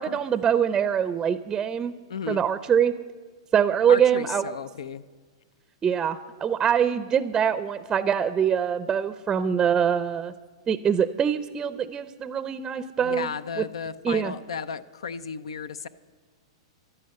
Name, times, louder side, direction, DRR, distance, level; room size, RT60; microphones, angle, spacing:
voice 1, 0.0-1.9 2.3-2.9 3.5-4.4 5.8-10.3 10.7-13.3 13.6-13.7 14.0-14.3, right 8 dB, 20° right, 12 dB, 0.5 m, -24 dB
voice 2, 2.1-2.4 3.9-5.0 13.0-15.9, left 6 dB, 85° left, 15 dB, 0.6 m, -34 dB
15.0 x 12.0 x 7.7 m, 1.4 s
hypercardioid pair, 135°, 3 cm